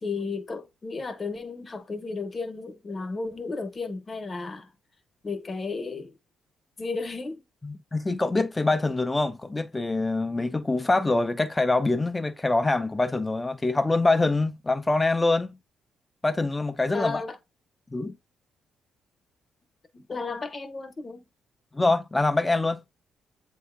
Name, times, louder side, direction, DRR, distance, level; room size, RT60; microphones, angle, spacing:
voice 1, 0.0-4.7 5.2-6.2 6.8-7.4 16.9-17.4 19.9-21.2, left 3 dB, 35° left, 1.0 m, -33 dB
voice 2, 7.6-15.5 16.2-17.2 17.9-18.2 21.7-22.8, left 2 dB, 15° left, 0.5 m, -24 dB
7.7 x 2.7 x 2.5 m
cardioid pair, 90°, 0 cm